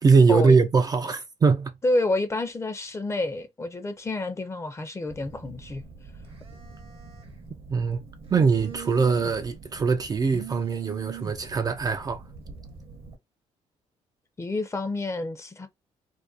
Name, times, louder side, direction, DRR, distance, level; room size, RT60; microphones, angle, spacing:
voice 1, 0.0-1.7 7.7-8.0 8.3-12.2, right 5 dB, 30° right, 0.3 m, -22 dB
voice 2, 1.8-5.8 14.4-15.7, left 2 dB, 25° left, 0.6 m, -28 dB
Telephone, 5.1-13.1, right 6 dB, 50° right, 0.7 m, -42 dB
2.5 x 2.2 x 2.3 m
cardioid pair, 90°, 12 cm